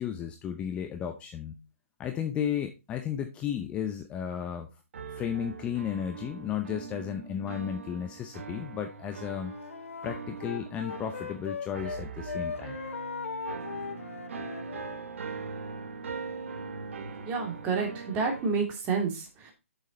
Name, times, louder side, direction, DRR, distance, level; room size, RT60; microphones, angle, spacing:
voice 1, 0.0-1.6 2.0-4.7 5.1-9.5 10.0-12.8, left 9 dB, 15° left, 6 dB, 0.7 m, -34 dB
sound 1, 4.9-18.7, right 5 dB, 60° right, 1.5 m, -41 dB
Wind instrument woodwind instrument, 9.4-12.0 12.2-15.0, left 5 dB, 70° left, 1.1 m, -38 dB
voice 2, 17.2-19.5, right 5 dB, 20° right, 2 dB, 2.5 m, -29 dB
8.1 x 6.8 x 4.0 m, 0.27 s
hypercardioid pair, 145°, 7 cm